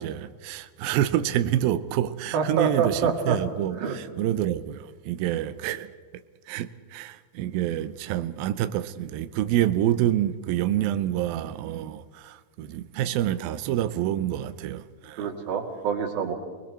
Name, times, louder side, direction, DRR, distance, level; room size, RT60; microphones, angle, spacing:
voice 1, 0.0-5.9 6.5-15.3, right 12 dB, 90° right, 2.1 m, -27 dB
voice 2, 2.3-3.4 3.8-4.0 15.2-16.3, right 6 dB, 60° right, 3.7 m, -26 dB
29.5 x 20.5 x 4.4 m
omnidirectional pair, 5.1 m